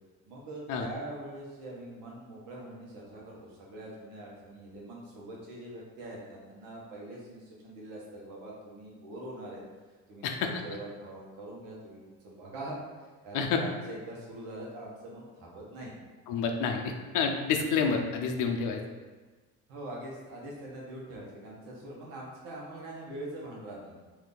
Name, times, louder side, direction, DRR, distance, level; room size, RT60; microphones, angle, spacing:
voice 1, 0.2-9.6 10.1-12.8 13.2-15.9 19.7-23.9, right 1 dB, 85° right, -4 dB, 1.1 m, -43 dB
voice 2, 16.3-18.8, left 5 dB, 65° left, 4 dB, 0.5 m, -29 dB
2.7 x 2.5 x 3.7 m, 1.3 s
cardioid pair, 115°, 33 cm